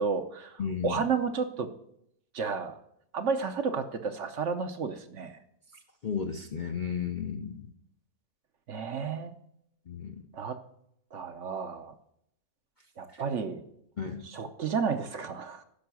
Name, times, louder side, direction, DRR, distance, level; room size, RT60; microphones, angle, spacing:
voice 1, 0.0-1.7 2.3-2.8 3.1-5.4 8.7-9.3 10.3-10.6 11.1-11.9 13.0-13.6 14.2-15.6, right 5 dB, 60° right, 8 dB, 1.0 m, -32 dB
voice 2, 0.6-1.1 6.0-7.7 9.9-10.3 13.1-13.2 14.0-14.5, left 7 dB, 45° left, 4 dB, 0.6 m, -34 dB
10.5 x 6.1 x 6.1 m, 0.73 s
omnidirectional pair, 1.6 m